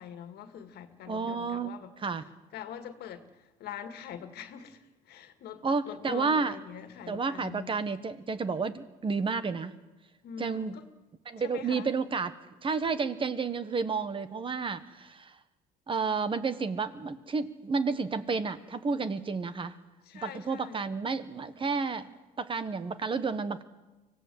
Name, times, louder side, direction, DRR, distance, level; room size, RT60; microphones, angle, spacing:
voice 1, 0.0-7.8 10.2-10.8 11.4-11.9 20.0-20.8, left 8 dB, 70° left, 2.0 m, -44 dB
voice 2, 1.1-1.7 2.0-2.2 5.6-6.6 7.1-9.8 10.4-10.8 11.3-12.3 12.6-15.3 15.9-19.8 20.2-22.1 22.4-23.6, right 4 dB, 30° right, 1.4 m, -31 dB
25.0 x 17.0 x 7.8 m
cardioid pair, 110°, 17 cm